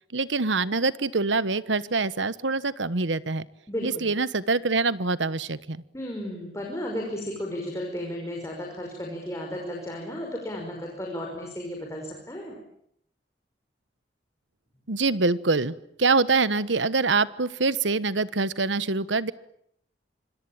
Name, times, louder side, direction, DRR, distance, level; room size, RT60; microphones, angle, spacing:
voice 1, 0.1-3.5 3.8-5.8 14.9-19.3, right 3 dB, 85° right, 16 dB, 1.2 m, -25 dB
voice 2, 3.7-4.1 5.9-12.6, equal, 15° left, 0 dB, 5.5 m, -34 dB
26.0 x 25.5 x 8.9 m, 0.71 s
head